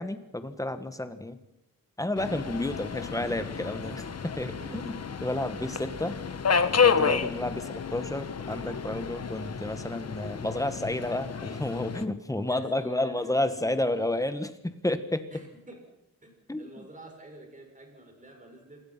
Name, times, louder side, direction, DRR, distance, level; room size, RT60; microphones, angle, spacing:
voice 1, 0.0-1.4 2.0-6.2 6.8-15.3 16.5-16.8, left 1 dB, 10° left, 10 dB, 1.8 m, -31 dB
Subway metro underground, 2.2-12.1, left 6 dB, 45° left, 1.4 m, -30 dB
voice 2, 4.5-5.0 5.4-5.5 7.6-7.7 12.5-13.7 15.3-15.8 16.2-18.8, right 1 dB, 20° right, 2 dB, 6.9 m, -48 dB
27.5 x 21.5 x 6.0 m, 0.86 s
wide cardioid pair, 135°, 35 cm